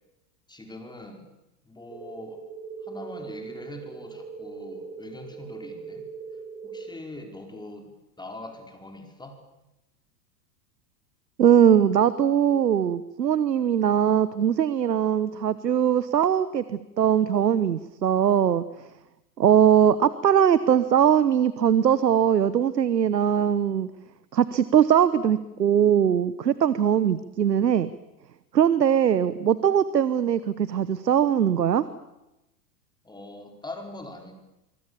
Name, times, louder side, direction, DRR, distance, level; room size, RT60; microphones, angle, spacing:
voice 1, 0.5-1.3 1.6-2.4 2.8-6.1 6.6-9.4 33.0-34.3, left 2 dB, 10° left, 4 dB, 4.8 m, -42 dB
sound 1, 1.9-6.9, right 5 dB, 60° right, 6.1 m, -40 dB
voice 2, 11.4-18.6 19.4-23.9 24.3-27.9 28.5-31.9, right 9 dB, 90° right, 15 dB, 1.2 m, -21 dB
25.0 x 24.0 x 7.1 m, 0.92 s
hypercardioid pair, 100°, 48 cm